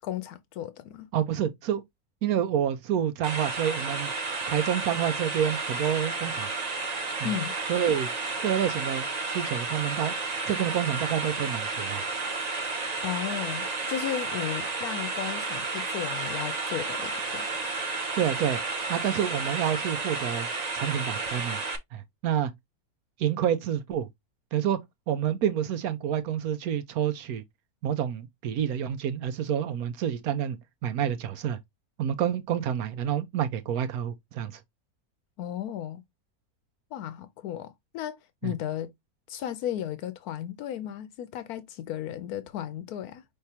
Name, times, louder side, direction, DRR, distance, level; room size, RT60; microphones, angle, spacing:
voice 1, 0.0-1.1 7.2-7.5 13.0-17.5 35.4-36.0 36.9-38.2 38.4-38.9 39.3-43.2, left 11 dB, 85° left, 1.1 m, -34 dB
voice 2, 1.1-1.8 2.2-6.5 7.2-7.3 7.7-8.1 8.4-10.1 10.4-12.1 18.2-18.6 18.9-20.5 20.7-21.6 21.9-22.5 23.2-24.1 24.5-24.8 25.1-27.4 27.8-30.6 30.8-31.6 32.0-34.6 38.4-38.5, right 9 dB, 80° right, 1.1 m, -28 dB
sound 1, 3.2-21.8, right 3 dB, 35° right, 0.8 m, -32 dB
5.7 x 3.3 x 2.7 m
omnidirectional pair, 1.6 m